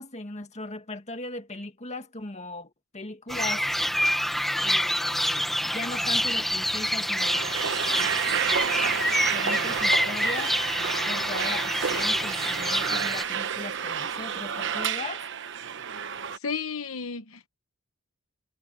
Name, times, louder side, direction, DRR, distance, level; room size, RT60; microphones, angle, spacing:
voice 1, 0.0-3.6 4.6-7.5 9.3-10.6 11.1-15.3, left 2 dB, 35° left, 2.1 m, -38 dB
sound 1, 3.3-13.2, equal, ahead, 1.3 m, -27 dB
sound 2, 6.9-16.4, right 7 dB, 60° right, 1.1 m, -30 dB
voice 2, 16.4-17.5, left 5 dB, 85° left, 1.1 m, -33 dB
head